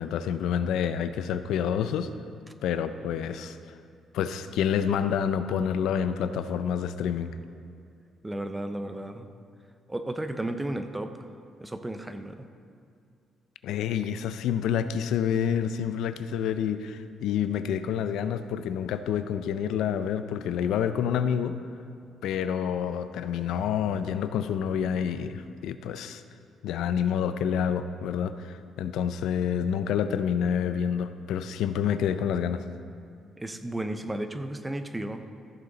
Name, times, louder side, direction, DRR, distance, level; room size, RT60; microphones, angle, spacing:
voice 1, 0.0-2.1 2.6-3.6 4.1-7.3 13.6-21.6 22.2-26.2 26.6-32.6, left 8 dB, 85° left, 11 dB, 0.4 m, -28 dB
voice 2, 8.2-9.3 9.9-11.3 11.6-12.5 33.4-35.2, right 1 dB, 15° right, 8 dB, 0.7 m, -33 dB
14.5 x 6.8 x 3.9 m, 2.4 s
cardioid pair, 90°, 0 cm